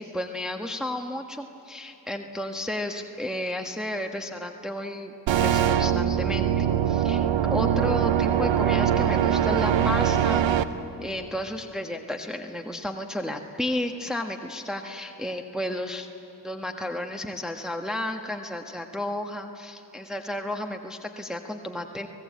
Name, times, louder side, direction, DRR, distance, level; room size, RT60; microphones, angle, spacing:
voice 1, 0.0-10.5 11.0-16.1 16.4-22.1, left 1 dB, ahead, 3 dB, 1.4 m, -32 dB
sound 1, 5.3-10.6, right 9 dB, 65° right, 1.1 m, -22 dB
24.5 x 19.0 x 8.4 m, 3.0 s
supercardioid pair, 50°, 49 cm